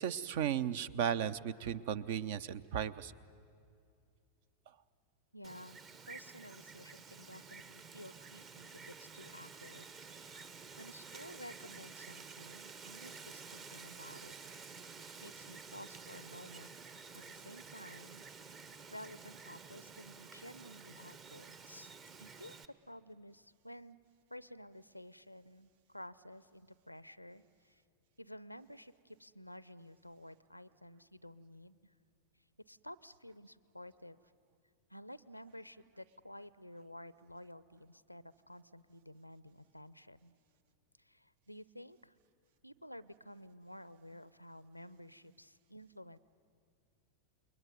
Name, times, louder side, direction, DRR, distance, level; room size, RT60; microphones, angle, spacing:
voice 1, 0.0-3.1, right 9 dB, 50° right, 17 dB, 0.7 m, -35 dB
voice 2, 5.3-5.8 6.1-9.9 10.1-10.5 10.8-14.3 14.9-16.7 17.1-18.3 18.9-21.9 22.2-22.6 22.9-24.0 24.3-27.8 28.2-31.9 32.7-34.2 34.9-40.3 41.0-42.1 42.6-46.2, left 1 dB, 90° left, 19 dB, 0.6 m, -52 dB
Wind, 5.4-22.6, right 5 dB, 30° right, 1.0 m, -51 dB
29.0 x 21.5 x 9.4 m, 2.4 s
figure-of-eight pair, 90°, 0 cm